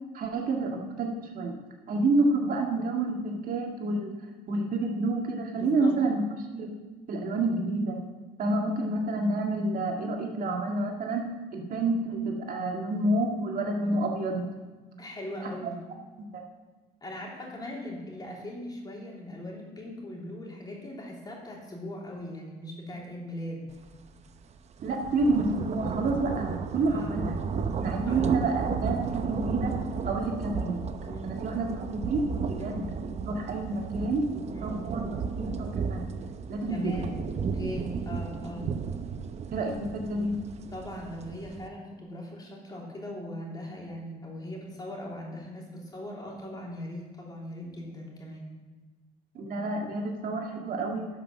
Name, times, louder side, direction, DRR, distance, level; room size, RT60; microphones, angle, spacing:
voice 1, 0.1-1.5 1.9-4.1 4.5-6.2 6.5-6.7 7.1-8.0 8.4-11.2 11.5-14.5 15.4-15.7 16.3-16.4 24.8-27.4 27.8-30.8 31.2-31.7 31.9-36.0 36.5-36.9 39.5-40.4 49.3-51.1, right 2 dB, 55° right, 1 dB, 1.9 m, -29 dB
voice 2, 5.5-5.9 15.0-15.8 17.0-23.7 26.9-27.4 28.0-28.2 31.0-31.4 32.6-32.9 34.5-34.8 36.7-38.7 40.7-48.5, left 1 dB, 25° left, -3 dB, 3.1 m, -40 dB
sound 1, 23.9-24.0 24.4-41.7, right 5 dB, 40° right, 0.7 m, -34 dB
11.5 x 5.9 x 6.4 m, 1.3 s
cardioid pair, 110°, 17 cm